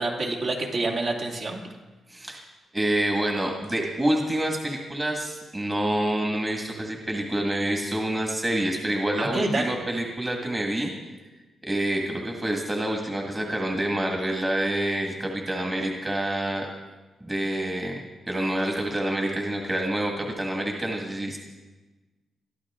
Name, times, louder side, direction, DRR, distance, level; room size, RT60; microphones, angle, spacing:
voice 1, 0.0-1.6 9.2-9.8, right 2 dB, 50° right, 0 dB, 2.4 m, -27 dB
voice 2, 2.1-2.4 2.7-10.9 11.6-16.7 17.2-18.0 18.3-21.4, right 1 dB, 15° right, 1 dB, 1.8 m, -27 dB
22.0 x 13.5 x 3.7 m, 1.2 s
wide cardioid pair, 140°, 0 cm